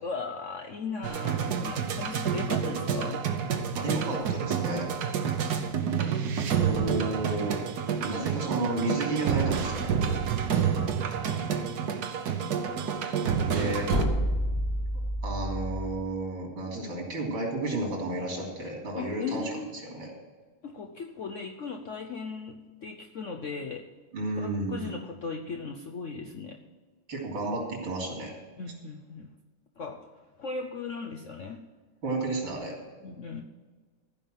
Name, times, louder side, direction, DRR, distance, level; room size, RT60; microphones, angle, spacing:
voice 1, 0.0-3.2 19.0-19.7 20.6-23.8 24.4-26.6 28.6-29.3 29.8-30.1 30.4-31.6 33.0-33.4, left 4 dB, 70° left, 3 dB, 0.7 m, -37 dB
sound 1, 1.0-14.0, right 7 dB, 55° right, 1.3 m, -29 dB
voice 2, 3.8-4.9 6.6-7.6 8.0-10.2 13.4-13.9 15.2-19.5 19.9-20.1 24.1-24.9 27.1-28.3 32.0-32.8, right 2 dB, 70° right, -1 dB, 4.0 m, -32 dB
sound 2, 13.9-16.0, equal, 30° left, 1.5 m, -29 dB
14.5 x 5.5 x 9.0 m, 1.4 s
omnidirectional pair, 2.3 m